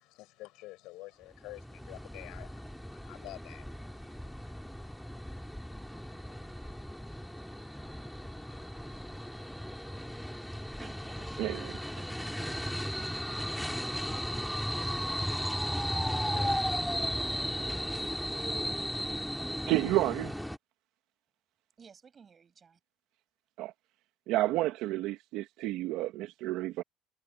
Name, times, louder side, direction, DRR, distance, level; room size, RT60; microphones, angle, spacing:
voice 1, 0.0-10.8 15.4-19.5, left 19 dB, 70° left, 7.4 m, -54 dB
sound 1, 1.4-20.6, equal, ahead, 2.5 m, -36 dB
voice 2, 10.8-12.6 14.4-15.2 21.8-22.8, right 6 dB, 30° right, 7.7 m, -57 dB
voice 3, 11.4-11.7 19.7-20.3 23.6-23.7 24.3-26.8, right 16 dB, 70° right, 1.9 m, -30 dB
cardioid pair, 125°, 0 cm